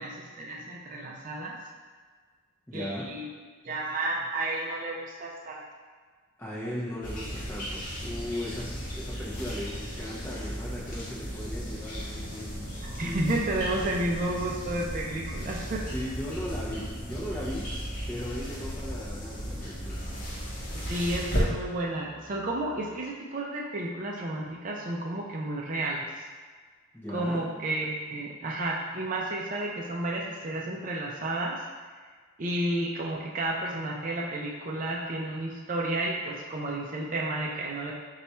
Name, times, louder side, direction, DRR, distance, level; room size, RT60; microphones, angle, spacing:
voice 1, 0.0-1.6 2.7-3.3 3.6-5.6 12.8-15.8 20.7-26.2 27.1-31.6 32.4-37.9, right 1 dB, 40° right, -2 dB, 0.4 m, -32 dB
voice 2, 2.7-3.1 6.4-12.6 12.9-13.2 15.9-17.7 18.1-20.0 26.9-27.4, left 1 dB, 10° left, -7 dB, 0.7 m, -37 dB
sound 1, 7.0-21.4, equal, 40° left, 0.9 m, -35 dB
Musical instrument, 13.3-23.1, right 1 dB, 15° right, 1.1 m, -54 dB
4.0 x 2.3 x 4.2 m, 1.5 s
head